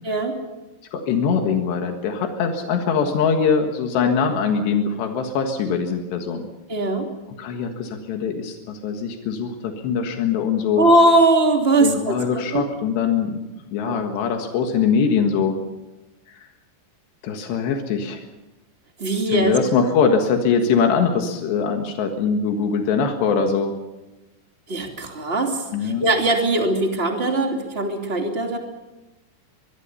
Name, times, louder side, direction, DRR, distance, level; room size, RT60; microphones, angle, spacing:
voice 1, 0.0-0.4 6.7-7.1 10.8-12.2 12.5-12.6 13.9-14.0 19.0-19.5 24.7-28.6, right 2 dB, 15° right, 2 dB, 2.5 m, -20 dB
voice 2, 0.9-6.5 7.4-10.9 11.8-13.4 13.7-15.6 16.3-16.5 17.2-18.3 19.1-23.7 25.7-26.0, left 6 dB, 85° left, 4 dB, 3.9 m, -22 dB
24.0 x 22.5 x 5.6 m, 1.0 s
omnidirectional pair, 4.8 m